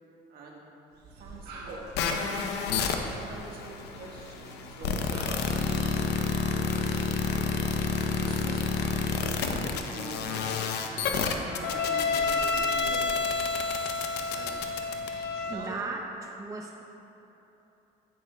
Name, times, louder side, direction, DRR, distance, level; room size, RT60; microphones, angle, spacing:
voice 1, 0.3-0.6 1.2-2.4 3.0-6.0 7.2-7.4 8.2-10.6 10.8-13.3 14.3-14.6 15.5-15.8, right 3 dB, 60° right, -2 dB, 1.4 m, -45 dB
sound 1, 0.9-15.8, right 2 dB, 75° right, 1.1 m, -48 dB
sound 2, 1.9-15.5, left 5 dB, 80° left, 0.6 m, -29 dB
voice 2, 15.5-16.8, right 3 dB, 20° right, 1 dB, 0.5 m, -36 dB
9.8 x 8.8 x 2.2 m, 3.0 s
cardioid pair, 110°, 17 cm